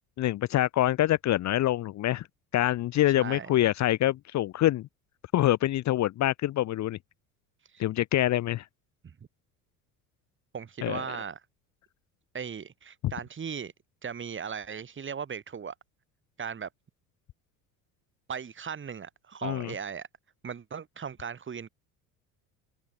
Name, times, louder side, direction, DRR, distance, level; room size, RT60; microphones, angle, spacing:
voice 1, 0.2-2.3 2.5-4.9 5.3-7.0 7.8-8.7 10.8-11.0 13.0-13.1 19.4-19.7, left 14 dB, 40° left, 0.8 m, -25 dB
voice 2, 3.2-3.5 7.7-7.8 9.0-9.2 10.5-11.4 12.3-13.7 14.0-15.7 16.4-16.7 18.3-20.1 20.4-21.7, right 7 dB, 25° right, 1.8 m, -37 dB
hypercardioid pair, 70°, 43 cm